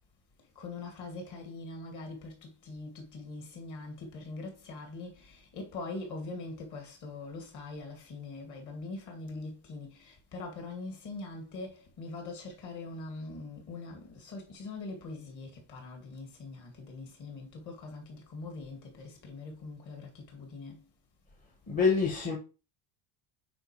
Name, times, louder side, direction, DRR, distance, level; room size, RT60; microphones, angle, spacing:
voice 1, 0.6-20.8, left 3 dB, 40° left, 2.4 m, -42 dB
voice 2, 21.7-22.4, left 5 dB, 15° left, 1.0 m, -26 dB
8.8 x 4.5 x 3.3 m
cardioid pair, 175°, 47 cm